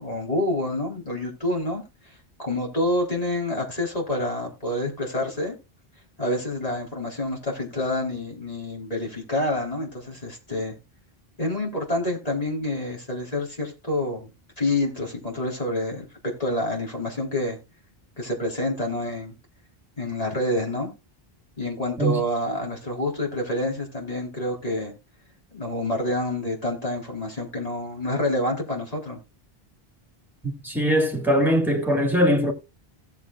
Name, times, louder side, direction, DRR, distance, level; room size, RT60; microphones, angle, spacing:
voice 1, 0.0-1.8 2.4-5.6 6.2-10.7 11.4-14.3 14.6-17.6 18.2-19.3 20.0-20.9 21.6-24.9 25.5-29.2, left 1 dB, 40° left, 3.9 m, -27 dB
voice 2, 30.6-32.5, equal, ahead, 2.2 m, -21 dB
17.0 x 7.4 x 2.4 m
omnidirectional pair, 1.0 m